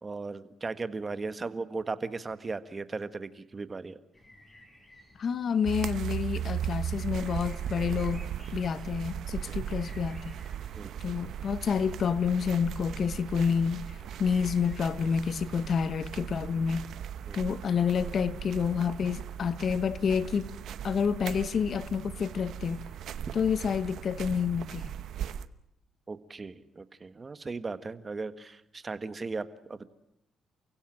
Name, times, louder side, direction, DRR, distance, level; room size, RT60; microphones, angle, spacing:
voice 1, 0.0-4.0 10.8-10.9 17.3-17.4 26.1-29.9, right 3 dB, 30° right, 1.6 m, -37 dB
sound 1, 4.1-14.8, left 1 dB, 20° left, 7.4 m, -56 dB
voice 2, 5.2-8.3 8.5-10.3 11.0-16.9 17.3-20.5 20.8-22.8 23.3-24.9, left 6 dB, 55° left, 1.2 m, -29 dB
sound 2, 5.6-25.5, right 10 dB, 70° right, 0.9 m, -38 dB
29.0 x 16.5 x 9.2 m
cardioid pair, 90°, 0 cm